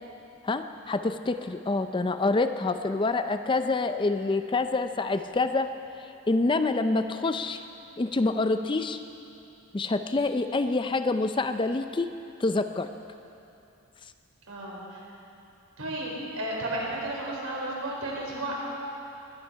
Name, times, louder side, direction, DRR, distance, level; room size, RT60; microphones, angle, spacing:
voice 1, 0.4-5.7 6.3-7.7 8.0-9.0 9.7-12.2 12.4-12.9, left 3 dB, 20° left, 9 dB, 0.4 m, -26 dB
voice 2, 14.5-15.0 15.8-18.5, right 1 dB, 80° right, -4 dB, 4.3 m, -33 dB
20.5 x 11.5 x 5.6 m, 2.8 s
head